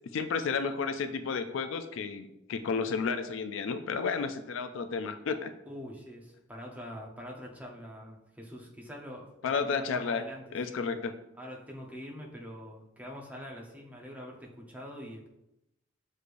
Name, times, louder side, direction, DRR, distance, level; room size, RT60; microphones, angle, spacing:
voice 1, 0.1-5.5 9.4-10.2 10.5-11.1, left 5 dB, 80° left, 10 dB, 0.4 m, -32 dB
voice 2, 5.7-10.8 11.4-15.3, equal, 10° right, -2 dB, 0.7 m, -44 dB
6.5 x 3.2 x 2.5 m, 0.87 s
head